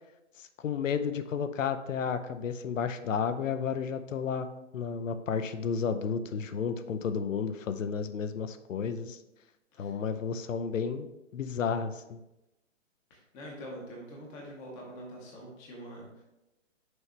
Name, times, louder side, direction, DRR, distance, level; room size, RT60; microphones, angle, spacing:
voice 1, 0.4-4.5 4.7-9.2 9.8-11.1 11.3-12.2, left 6 dB, 80° left, 10 dB, 0.7 m, -32 dB
voice 2, 13.1-16.2, equal, 10° left, -2 dB, 0.6 m, -45 dB
6.3 x 3.1 x 5.7 m, 0.93 s
hypercardioid pair, 160°, 38 cm